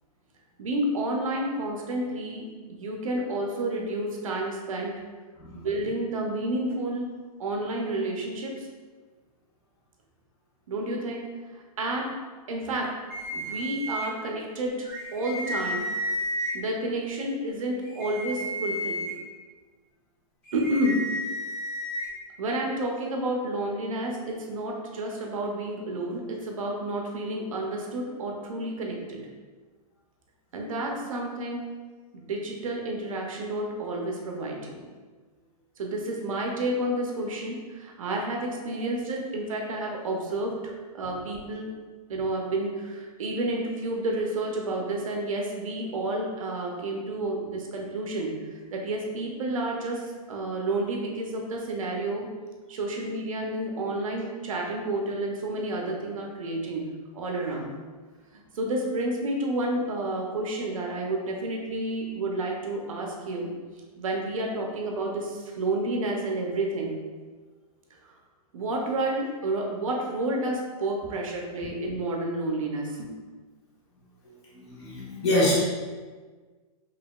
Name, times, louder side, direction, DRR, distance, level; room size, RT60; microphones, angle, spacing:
voice 1, 0.6-5.0 5.5-7.1 7.4-8.7 10.7-12.1 12.5-13.0 13.3-15.9 16.5-19.1 20.5-21.1 22.4-29.3 30.5-31.6 32.1-34.8 35.8-41.7 42.1-52.3 52.7-57.7 58.3-63.5 64.0-67.0 68.0-68.1 68.5-73.1, right 1 dB, 60° right, 0 dB, 0.8 m, -30 dB
sound 1, 13.1-14.1 14.8-16.5 17.8-19.1 20.4-22.1, equal, 5° left, 0.7 m, -32 dB
voice 2, 74.6-75.5, left 1 dB, 45° left, -6 dB, 1.3 m, -25 dB
4.9 x 2.9 x 2.4 m, 1.4 s
hypercardioid pair, 175°, 20 cm